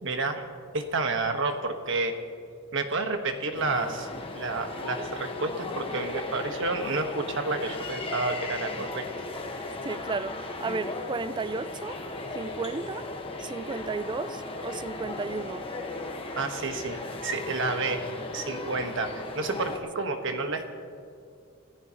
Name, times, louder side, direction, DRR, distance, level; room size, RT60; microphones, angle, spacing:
voice 1, 0.0-0.4 0.7-2.2 2.7-4.1 4.3-9.0 16.3-18.0 18.3-20.7, right 3 dB, 65° right, 1.4 m, -30 dB
sound 1, 3.5-19.8, left 2 dB, 25° left, 1.4 m, -36 dB
voice 2, 9.8-12.0 12.3-13.1 13.4-15.7, right 4 dB, 20° right, 0.3 m, -33 dB
28.0 x 15.5 x 3.0 m
head